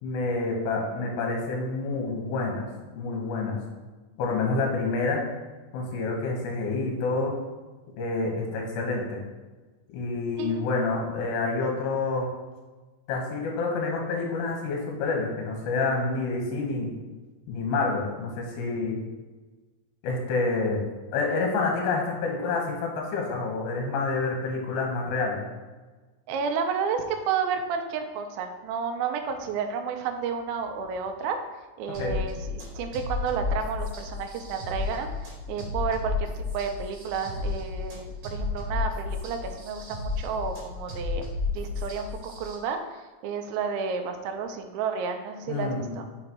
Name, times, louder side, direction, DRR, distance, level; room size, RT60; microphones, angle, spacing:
voice 1, 0.0-2.7 2.9-3.6 4.2-5.2 5.7-7.4 8.0-9.2 9.9-12.3 13.1-16.9 17.5-19.0 20.0-20.8 21.1-25.4 32.0-32.2 45.5-45.9, left 3 dB, 80° left, 0 dB, 3.1 m, -28 dB
voice 2, 26.3-31.4 31.8-41.3 41.5-46.1, right 6 dB, 85° right, 5 dB, 2.1 m, -31 dB
sound 1, 31.9-42.6, left 3 dB, 50° right, 2.7 m, -32 dB
6.3 x 3.8 x 4.5 m, 1.3 s
omnidirectional pair, 4.9 m